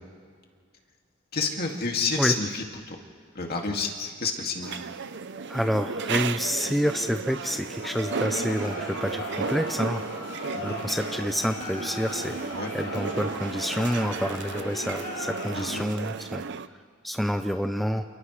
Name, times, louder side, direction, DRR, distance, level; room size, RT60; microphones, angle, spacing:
voice 1, 1.3-3.0 3.3-4.8 10.5-10.8 12.5-12.7 15.5-15.9, left 4 dB, 50° left, 1 dB, 2.3 m, -29 dB
sound 1, 4.6-16.7, right 5 dB, 60° right, 0.7 m, -34 dB
voice 2, 5.5-10.1 10.6-12.4 12.7-16.4 17.0-18.0, equal, ahead, 6 dB, 0.5 m, -28 dB
Crowd, 7.5-16.0, left 2 dB, 90° left, 5.5 m, -38 dB
29.5 x 28.5 x 3.3 m, 2.1 s
head